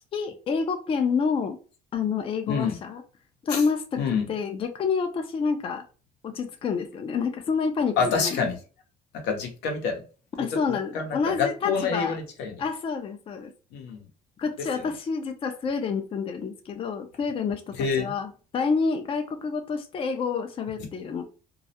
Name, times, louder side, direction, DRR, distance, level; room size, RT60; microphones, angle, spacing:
voice 1, 0.1-1.6 1.9-3.0 3.4-5.9 6.2-8.5 10.4-12.2 12.6-13.5 14.4-21.2, left 5 dB, 35° left, 6 dB, 0.4 m, -28 dB
voice 2, 8.0-8.5 9.2-10.0 10.4-12.6 13.7-14.0 14.8-14.9 17.8-18.1, left 5 dB, 85° left, 3 dB, 0.7 m, -27 dB
2.3 x 2.0 x 2.7 m, 0.35 s
cardioid pair, 110°, 17 cm